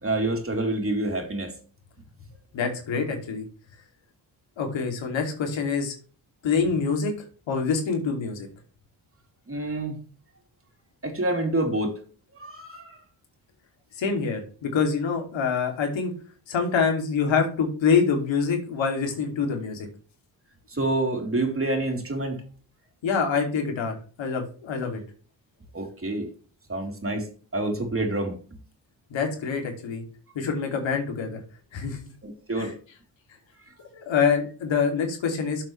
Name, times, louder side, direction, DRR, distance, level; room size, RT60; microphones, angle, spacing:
voice 1, 0.0-1.5 9.5-10.0 11.0-12.0 12.3-13.0 20.7-22.4 25.7-26.3 26.7-28.4 32.2-32.7, right 2 dB, 30° right, 3.6 m, -27 dB
voice 2, 2.5-3.4 4.6-5.9 6.4-7.1 7.5-8.5 14.0-16.1 16.5-19.9 23.0-25.0 29.1-30.0 30.3-31.4 31.7-32.1 32.6-32.7 33.9-35.6, left 5 dB, 75° left, 2.8 m, -25 dB
12.0 x 7.5 x 3.3 m
supercardioid pair, 60°, 46 cm